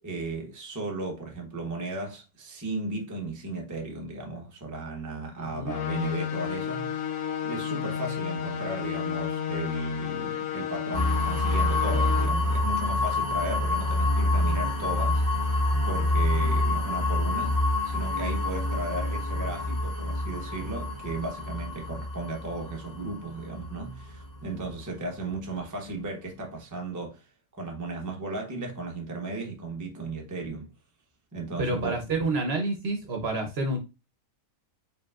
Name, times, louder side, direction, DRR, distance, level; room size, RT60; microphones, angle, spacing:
voice 1, 0.0-15.2 15.5-17.6 17.8-27.3 27.6-30.7 31.3-32.0, right 2 dB, 15° right, 0.7 m, -35 dB
voice 2, 5.4-5.8 31.6-33.8, right 2 dB, 55° right, 1.0 m, -28 dB
sound 1, 5.7-12.3, left 9 dB, 65° left, 1.2 m, -32 dB
sound 2, 10.9-24.7, left 2 dB, 35° left, 1.0 m, -27 dB
4.9 x 3.3 x 2.4 m
omnidirectional pair, 1.5 m